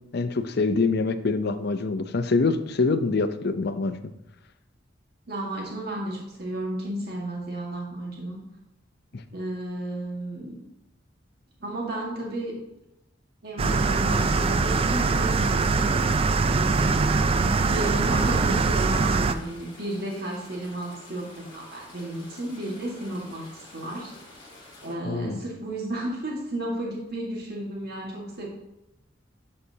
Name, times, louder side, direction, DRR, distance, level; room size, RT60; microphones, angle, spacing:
voice 1, 0.1-4.0 9.1-9.2 25.0-25.4, left 3 dB, 60° left, 10 dB, 0.6 m, -25 dB
voice 2, 5.3-8.4 9.3-10.6 11.6-12.6 13.4-16.1 16.5-17.1 17.4-24.1 24.8-28.5, right 1 dB, 55° right, -2 dB, 1.8 m, -33 dB
sound 1, 13.6-19.3, right 4 dB, 30° right, 0.4 m, -22 dB
sound 2, 18.0-24.9, left 2 dB, 30° left, 3.4 m, -49 dB
11.0 x 6.5 x 2.8 m, 0.90 s
head